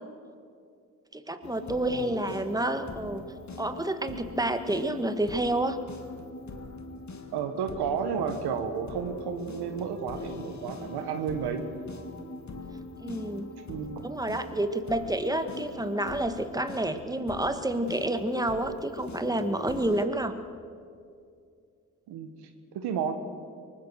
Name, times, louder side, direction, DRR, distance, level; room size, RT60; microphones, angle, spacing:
voice 1, 1.1-3.2 3.6-5.8 13.0-13.5 14.0-20.3, right 1 dB, 10° right, 8 dB, 1.7 m, -29 dB
sound 1, 1.4-20.1, left 3 dB, 45° left, 2.1 m, -42 dB
voice 2, 7.3-11.6 13.7-14.1 22.1-23.1, right 7 dB, 80° right, 7 dB, 1.6 m, -32 dB
23.5 x 19.5 x 6.5 m, 2.4 s
supercardioid pair, 45°, 39 cm